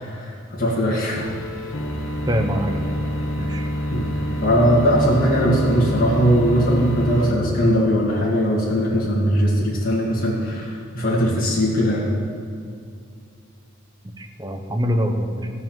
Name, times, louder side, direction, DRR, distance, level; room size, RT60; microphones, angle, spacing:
voice 1, 0.2-1.2 3.9-4.1 4.4-12.1, equal, 45° left, -6 dB, 2.1 m, -20 dB
sound 1, 1.2-7.3, left 1 dB, 70° left, 1.3 m, -26 dB
voice 2, 2.3-2.9 3.4-3.7 14.0-15.5, equal, 20° right, 3 dB, 1.0 m, -24 dB
16.5 x 5.6 x 7.4 m, 2.4 s
head